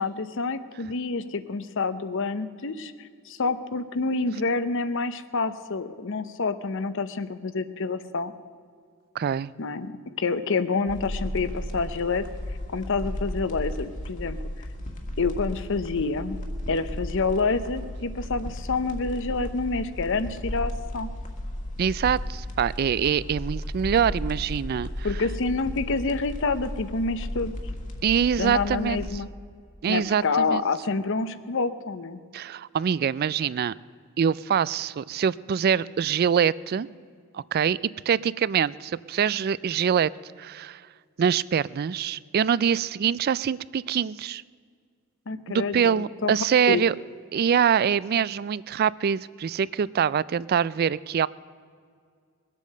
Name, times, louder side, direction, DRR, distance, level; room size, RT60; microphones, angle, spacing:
voice 1, 0.0-8.3 9.6-12.3 12.7-14.4 15.2-16.4 16.7-21.1 25.0-27.5 28.4-29.3 29.9-32.2 45.3-46.3 46.7-46.8, left 4 dB, 60° left, 13 dB, 0.7 m, -28 dB
voice 2, 9.2-9.5 21.8-25.1 28.0-29.1 29.8-30.6 32.3-33.7 34.2-36.9 37.3-37.8 38.1-40.1 40.4-40.8 41.2-44.4 45.5-47.0 47.3-51.3, right 7 dB, 45° right, 20 dB, 0.3 m, -24 dB
sound 1, 10.9-29.2, left 1 dB, 35° left, 1.6 m, -34 dB
21.5 x 8.3 x 6.5 m, 2.1 s
head